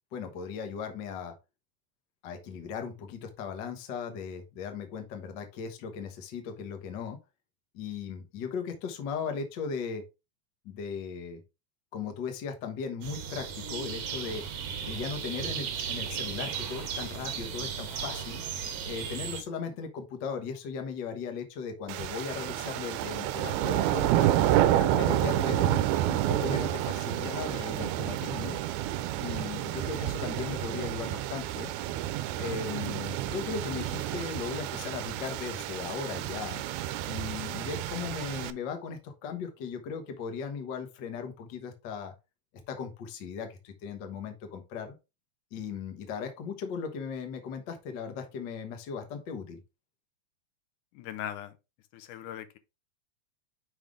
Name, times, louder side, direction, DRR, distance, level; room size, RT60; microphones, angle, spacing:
voice 1, 0.1-1.3 2.2-7.2 7.7-10.0 10.6-11.4 11.9-14.4 14.8-18.4 18.8-24.3 24.8-28.6 29.2-31.7 32.4-36.6 37.1-42.1 42.7-44.9 45.5-49.6, left 6 dB, 60° left, 1.2 m, -37 dB
sound 1, 13.0-19.4, right 7 dB, 65° right, 1.9 m, -36 dB
sound 2, 21.9-38.5, right 13 dB, 80° right, 1.9 m, -29 dB
voice 2, 50.9-51.6 51.9-52.6, left 10 dB, 85° left, 2.2 m, -39 dB
5.7 x 5.0 x 3.6 m
omnidirectional pair, 3.6 m